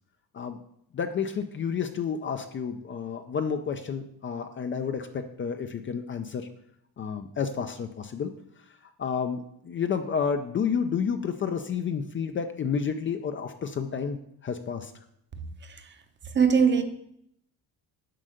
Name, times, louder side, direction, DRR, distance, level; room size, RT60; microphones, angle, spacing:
voice 1, 0.9-6.5 7.0-8.3 9.0-14.2 14.4-14.9, left 6 dB, 30° left, 0.5 m, -30 dB
voice 2, 15.6-16.0 16.2-16.8, right 6 dB, 30° right, 0.8 m, -22 dB
7.7 x 5.5 x 6.4 m
cardioid pair, 155°, 38 cm